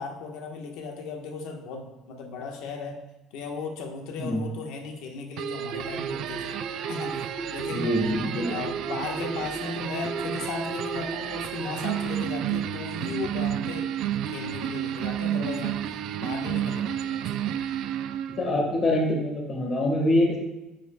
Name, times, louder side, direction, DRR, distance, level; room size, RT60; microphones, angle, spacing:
voice 1, 0.0-3.0 3.3-6.6 6.9-7.9 8.5-13.9 14.3-15.8 16.2-17.6, left 4 dB, 75° left, 2 dB, 1.4 m, -36 dB
sound 1, 5.4-18.5, right 10 dB, 55° right, 0.4 m, -31 dB
sound 2, 5.7-12.1, right 4 dB, 25° right, 1.0 m, -36 dB
voice 2, 7.7-8.6 18.4-20.4, left 1 dB, 30° left, 0 dB, 1.6 m, -24 dB
9.5 x 7.8 x 2.3 m, 1.0 s
cardioid pair, 170°, 0 cm